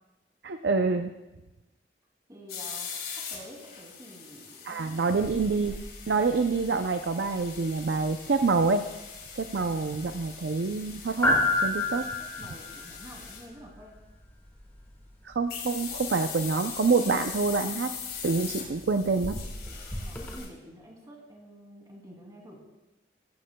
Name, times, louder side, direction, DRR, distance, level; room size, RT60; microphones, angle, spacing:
voice 1, 0.4-1.1 4.6-5.8 6.1-8.8 9.3-11.4 11.6-12.0 15.2-17.9 18.2-19.4, right 4 dB, 80° right, 7 dB, 0.5 m, -26 dB
voice 2, 2.3-2.9 3.2-5.2 12.4-13.9 20.0-22.6, equal, 20° right, -1 dB, 2.6 m, -48 dB
sound 1, 2.5-13.5 15.5-20.5, left 6 dB, 55° left, 2.8 m, -41 dB
sound 2, 5.2-20.4, left 2 dB, 10° left, 1.3 m, -35 dB
15.5 x 14.0 x 2.2 m, 1.1 s
head